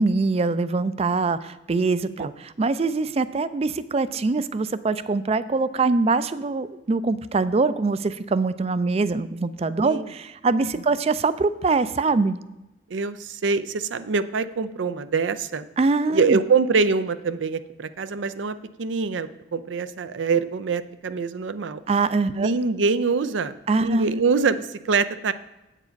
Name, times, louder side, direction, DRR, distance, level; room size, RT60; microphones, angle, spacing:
voice 1, 0.0-12.4 15.8-16.4 21.9-22.5 23.7-24.2, right 3 dB, 35° right, 15 dB, 0.4 m, -23 dB
voice 2, 12.9-15.7 16.1-21.8 22.3-25.3, right 4 dB, 90° right, 13 dB, 0.5 m, -24 dB
7.9 x 7.4 x 5.2 m, 0.98 s
head